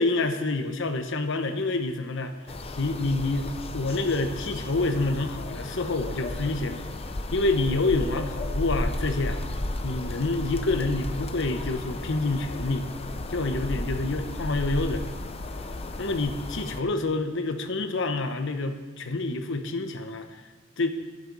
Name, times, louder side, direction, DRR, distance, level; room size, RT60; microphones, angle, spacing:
voice 1, 0.0-2.3 2.8-6.8 7.3-9.4 9.8-12.9 13.3-15.0 16.0-20.4 20.8-20.9, left 2 dB, 65° left, 7 dB, 1.0 m, -27 dB
sound 1, 2.5-16.8, left 1 dB, 30° left, 0.6 m, -34 dB
20.0 x 7.8 x 4.0 m, 1.4 s
head